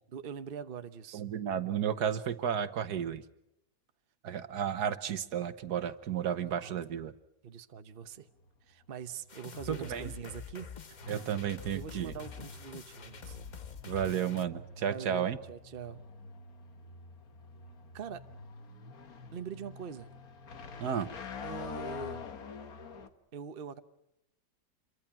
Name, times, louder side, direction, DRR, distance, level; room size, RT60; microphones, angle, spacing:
voice 1, 0.1-1.2 6.6-6.7 7.4-8.3 8.6-11.3 11.7-13.4 14.9-16.0 17.9-18.3 19.3-20.1 21.4-22.3 23.3-23.8, right 7 dB, 40° right, 9 dB, 1.0 m, -43 dB
voice 2, 1.1-3.2 4.2-7.1 9.7-10.1 11.1-12.1 13.8-15.4 20.8-21.1, right 8 dB, 70° right, 12 dB, 1.6 m, -32 dB
sound 1, 8.0-23.1, left 4 dB, 60° left, 1.8 m, -47 dB
sound 2, 9.3-14.4, left 7 dB, 35° left, 0.8 m, -47 dB
27.0 x 23.0 x 5.9 m, 0.86 s
omnidirectional pair, 1.8 m